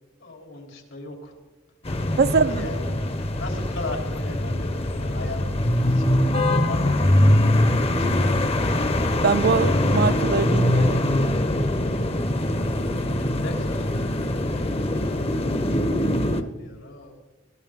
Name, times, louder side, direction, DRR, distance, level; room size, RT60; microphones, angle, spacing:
voice 1, 0.2-1.3 2.0-2.1 2.5-6.1 6.6-8.5 13.2-17.2, left 2 dB, 85° left, 3.7 m, -38 dB
sound 1, 1.8-16.4, left 1 dB, 30° left, 0.9 m, -22 dB
voice 2, 2.2-2.6 9.2-11.0, right 4 dB, 55° right, 0.5 m, -22 dB
21.0 x 15.0 x 3.7 m
head